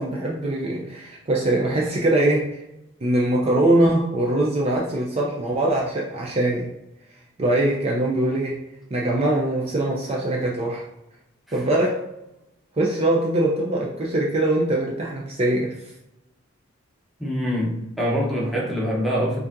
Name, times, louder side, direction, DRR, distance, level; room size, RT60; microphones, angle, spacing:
voice 1, 0.0-2.6 3.0-6.7 7.4-8.6 8.9-10.8 11.5-12.1 12.8-15.7, right 1 dB, 30° right, -3 dB, 0.4 m, -22 dB
voice 2, 17.2-19.4, equal, ahead, -5 dB, 0.8 m, -24 dB
4.8 x 2.6 x 2.5 m, 0.91 s
head